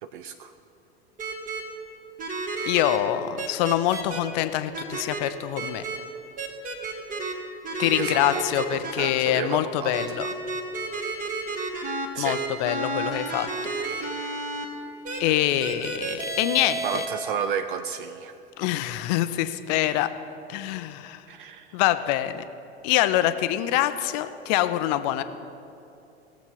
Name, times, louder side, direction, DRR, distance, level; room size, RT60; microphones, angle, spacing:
voice 1, 0.0-0.5 7.8-10.0 12.1-12.8 16.8-18.4 21.3-21.8, right 7 dB, 50° right, 10 dB, 0.5 m, -32 dB
sound 1, 1.2-1.6 2.2-3.0 3.4-4.2 4.7-5.2 5.5-6.0 6.4-7.3 7.6-9.1 9.9-14.6 15.0-15.2 15.6-17.1, right 3 dB, 25° right, 1.6 m, -31 dB
voice 2, 2.7-5.8 7.8-10.3 12.2-13.5 13.8-14.3 15.2-17.0 18.6-20.1 20.5-21.2 21.7-22.4 22.8-25.2, left 13 dB, 40° left, 11 dB, 0.6 m, -25 dB
17.5 x 7.3 x 5.4 m, 2.8 s
figure-of-eight pair, 85°, 32 cm